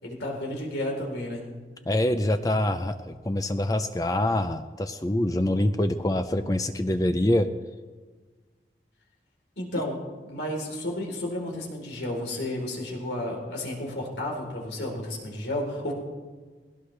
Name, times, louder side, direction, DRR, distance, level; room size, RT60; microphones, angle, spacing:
voice 1, 0.0-1.4 9.6-15.9, left 1 dB, 90° left, -1 dB, 3.8 m, -32 dB
voice 2, 1.9-7.5, left 1 dB, 20° left, 8 dB, 0.5 m, -25 dB
21.0 x 17.5 x 3.3 m, 1.4 s
head